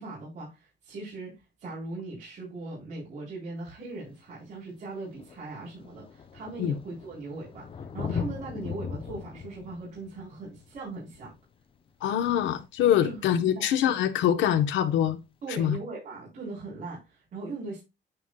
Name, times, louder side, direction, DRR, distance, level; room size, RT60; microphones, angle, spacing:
voice 1, 0.0-11.3 13.0-13.2 13.6-13.7 15.4-17.8, right 3 dB, 40° right, 3.9 m, -39 dB
Thunder, 3.7-3.8 4.7-4.8 5.0-12.3 14.0-14.1, left 6 dB, 30° left, 0.5 m, -39 dB
voice 2, 12.0-15.2 15.6-15.8, left 10 dB, 75° left, 1.0 m, -24 dB
9.2 x 5.4 x 2.3 m
cardioid pair, 175°, 19 cm